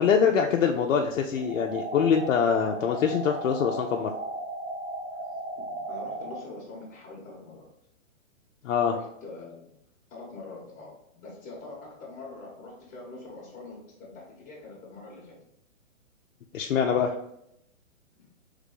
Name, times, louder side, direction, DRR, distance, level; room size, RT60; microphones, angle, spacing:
voice 1, 0.0-4.1 8.6-8.9 16.5-17.1, left 7 dB, 75° left, 2 dB, 0.6 m, -24 dB
sound 1, 1.4-6.4, right 2 dB, 60° right, 1.4 m, -36 dB
voice 2, 5.3-7.7 8.8-9.8 10.1-15.4 18.2-18.3, left 3 dB, 20° left, -7 dB, 1.0 m, -44 dB
3.6 x 3.2 x 3.8 m, 0.79 s
hypercardioid pair, 145°, 40 cm